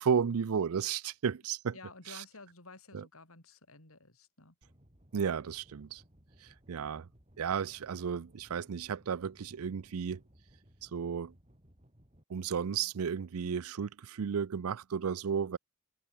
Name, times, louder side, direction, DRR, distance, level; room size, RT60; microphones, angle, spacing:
voice 1, 0.0-1.7 2.1-2.2 2.9-3.0 5.1-6.0 6.7-7.1 7.4-10.2 10.8-11.3 12.3-15.6, right 6 dB, 90° right, 0.5 m, -33 dB
voice 2, 1.7-4.5, left 3 dB, 75° left, 4.6 m, -53 dB
sound 1, 4.6-12.2, equal, 30° right, 5.7 m, -62 dB
open air
head